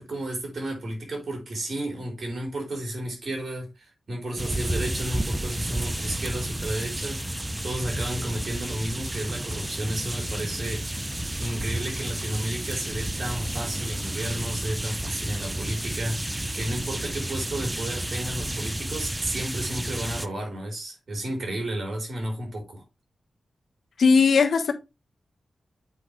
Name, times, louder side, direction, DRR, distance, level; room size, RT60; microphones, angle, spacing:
voice 1, 0.0-22.8, right 1 dB, 55° right, 4.1 m, -32 dB
sound 1, 4.4-20.3, right 1 dB, 15° right, 0.6 m, -31 dB
voice 2, 24.0-24.7, left 5 dB, 75° left, 1.2 m, -18 dB
8.3 x 5.1 x 3.2 m
cardioid pair, 65°, 0 cm